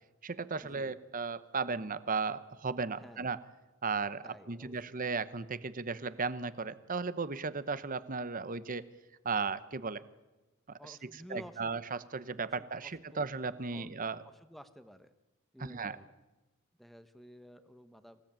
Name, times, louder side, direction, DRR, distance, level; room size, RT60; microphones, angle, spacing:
voice 1, 0.2-3.4 3.8-8.8 9.2-10.0 10.7-14.2 15.6-16.0, right 4 dB, 40° right, 15 dB, 0.9 m, -36 dB
voice 2, 3.0-3.3 4.2-5.0 10.8-11.7 12.6-13.2 13.7-13.9 14.2-15.1 15.5-16.1 16.8-18.2, equal, ahead, 10 dB, 1.1 m, -52 dB
25.5 x 16.5 x 8.9 m, 1.1 s
head